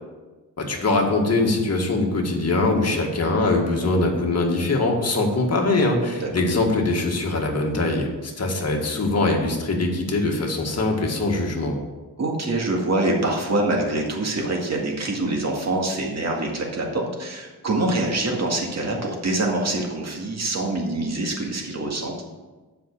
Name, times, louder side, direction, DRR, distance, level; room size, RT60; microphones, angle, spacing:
voice 1, 0.6-11.7, left 2 dB, 40° left, 1 dB, 1.8 m, -22 dB
voice 2, 6.1-6.5 12.2-22.1, right 2 dB, 45° right, 0 dB, 2.0 m, -25 dB
7.6 x 5.7 x 7.2 m, 1.2 s
wide cardioid pair, 105°, 38 cm